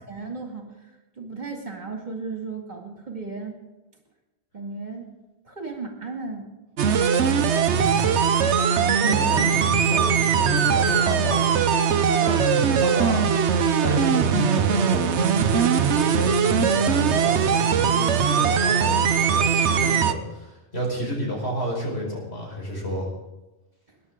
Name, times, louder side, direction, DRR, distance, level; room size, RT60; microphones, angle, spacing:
voice 1, 0.0-3.6 4.5-5.1 5.4-6.5 9.0-9.5 23.9-24.0, right 4 dB, 40° right, 1 dB, 2.3 m, -35 dB
sound 1, 6.8-20.1, right 7 dB, 80° right, 1.1 m, -20 dB
voice 2, 7.7-11.9 12.2-13.3 13.8-23.1, equal, 65° left, -2 dB, 5.1 m, -32 dB
22.0 x 11.0 x 3.7 m, 1.1 s
omnidirectional pair, 1.1 m